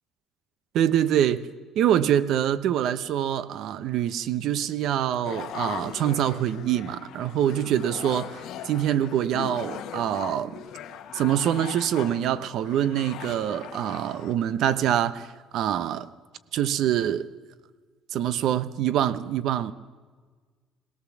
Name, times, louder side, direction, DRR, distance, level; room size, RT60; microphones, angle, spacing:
voice 1, 0.7-1.5 1.7-10.5 11.1-16.1 16.5-17.3 18.1-19.7, right 10 dB, 65° right, 14 dB, 0.9 m, -25 dB
sound 1, 5.2-14.3, left 10 dB, 70° left, 1.5 m, -39 dB
20.0 x 18.0 x 7.3 m, 1.5 s
cardioid pair, 110°, 0 cm